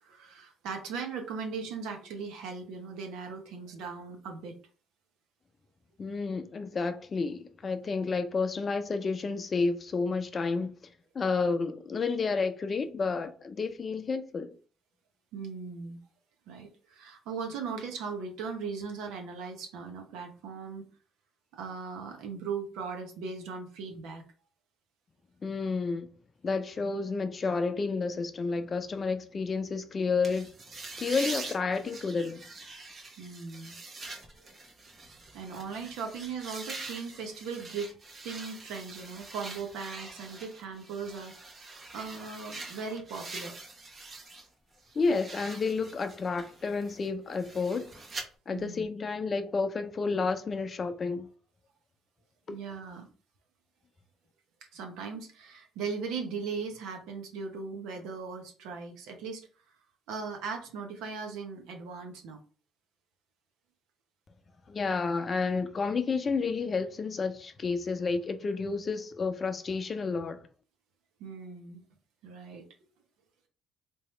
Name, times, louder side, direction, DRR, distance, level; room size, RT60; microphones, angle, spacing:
voice 1, 0.0-4.6 15.3-16.0 16.5-20.8 21.5-24.2 33.2-33.8 35.3-38.0 38.2-41.6 41.9-43.6 48.5-48.8 52.5-53.1 54.7-59.5 60.1-62.4 71.2-71.8 72.2-72.6, right 5 dB, 80° right, 0.9 m, -38 dB
voice 2, 6.0-10.7 11.1-14.5 25.4-26.1 26.4-30.5 31.0-32.4 44.9-47.9 48.5-51.3 52.5-52.6 64.7-70.4, left 4 dB, 40° left, 0.5 m, -30 dB
sound 1, 30.2-44.5 44.8-48.2, right 3 dB, 40° right, 1.0 m, -44 dB
3.5 x 2.9 x 3.1 m
supercardioid pair, 80°, 0 cm